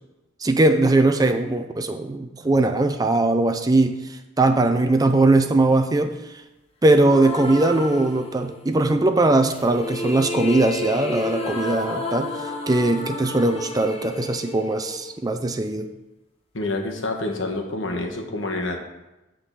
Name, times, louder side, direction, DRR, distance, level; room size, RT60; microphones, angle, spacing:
voice 1, 0.4-6.1 6.8-12.3 12.7-15.9, right 2 dB, 20° right, 7 dB, 0.4 m, -20 dB
sound 1, 7.1-8.8 9.5-15.6, left 2 dB, 30° left, 0.8 m, -31 dB
voice 2, 16.5-18.8, left 2 dB, 70° left, 2 dB, 1.2 m, -27 dB
8.6 x 3.8 x 6.8 m, 0.99 s
head